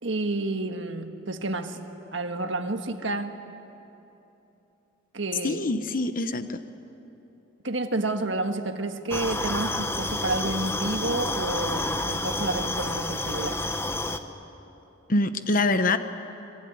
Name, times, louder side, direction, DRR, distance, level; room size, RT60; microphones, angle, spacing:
voice 1, 0.0-1.8 2.1-3.4 5.1-5.7 7.6-13.6, right 2 dB, 65° right, 6 dB, 1.7 m, -30 dB
voice 2, 5.4-6.6 15.1-16.0, left 2 dB, 45° left, 10 dB, 1.0 m, -24 dB
sound 1, 9.1-14.2, left 2 dB, 10° left, 1.0 m, -29 dB
25.5 x 24.0 x 9.6 m, 3.0 s
head